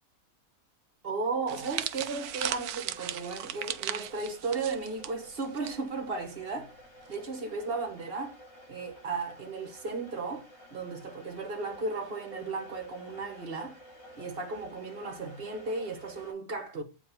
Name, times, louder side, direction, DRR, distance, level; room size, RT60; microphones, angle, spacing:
voice 1, 1.0-6.7 7.1-8.4 8.7-13.8 14.2-16.8, right 3 dB, 45° right, 1.3 m, -35 dB
sound 1, 1.5-5.7 6.0-6.2 7.1-7.4, right 11 dB, 85° right, 1.1 m, -37 dB
sound 2, 2.1-16.3, equal, 50° left, 4.8 m, -52 dB
8.8 x 3.0 x 4.3 m
omnidirectional pair, 1.5 m